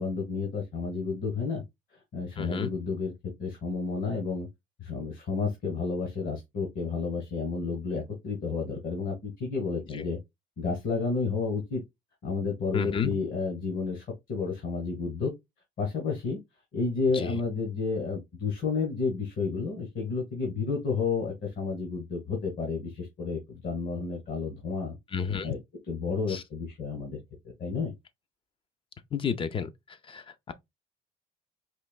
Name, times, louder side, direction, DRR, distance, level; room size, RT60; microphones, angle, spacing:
voice 1, 0.0-1.6 1.9-4.5 4.8-10.2 10.6-11.8 12.2-15.3 15.8-16.4 16.7-25.0 25.4-25.6 25.9-27.2 27.6-27.9, left 4 dB, 60° left, 1.4 m, -31 dB
voice 2, 2.4-2.7 9.9-10.0 12.7-13.1 17.1-17.4 25.1-25.5 26.3-26.4 29.1-30.5, left 7 dB, 30° left, 0.5 m, -31 dB
4.4 x 3.0 x 2.2 m
cardioid pair, 110°, 17 cm